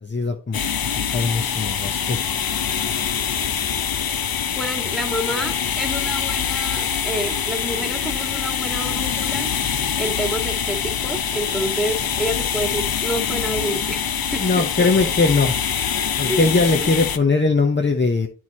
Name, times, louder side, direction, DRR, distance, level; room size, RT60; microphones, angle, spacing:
voice 1, 0.0-2.2 14.4-15.6 16.2-18.3, left 3 dB, 30° left, 3 dB, 0.9 m, -20 dB
sound 1, 0.5-17.2, left 8 dB, 75° left, 0.7 m, -24 dB
voice 2, 4.6-9.5 10.0-14.4 16.3-16.5 16.8-16.9, equal, ahead, 4 dB, 1.9 m, -28 dB
9.4 x 4.7 x 4.2 m, 0.34 s
wide cardioid pair, 75°, 35 cm